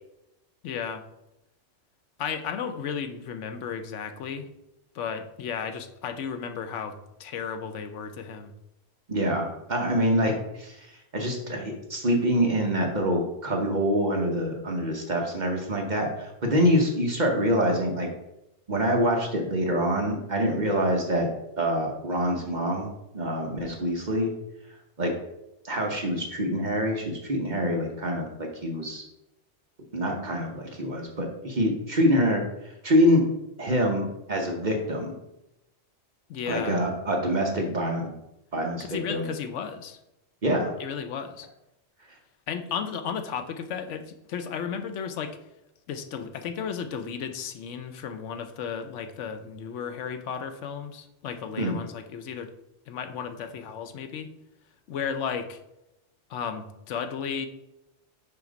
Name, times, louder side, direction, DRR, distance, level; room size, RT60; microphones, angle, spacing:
voice 1, 0.6-1.0 2.2-4.5 4.9-8.5 36.3-36.8 38.8-40.0 40.8-41.5 42.5-45.4 45.9-52.5 52.9-54.3 54.9-55.6 56.3-57.5, left 7 dB, 80° left, 8 dB, 1.0 m, -34 dB
voice 2, 9.1-18.1 18.7-21.3 21.6-24.3 25.0-25.1 25.6-29.0 29.9-33.2 33.6-35.2 36.5-38.1 38.5-39.3 40.4-40.7 51.6-51.8, equal, 40° right, 1 dB, 1.0 m, -25 dB
5.8 x 3.9 x 5.0 m, 0.89 s
omnidirectional pair, 1.2 m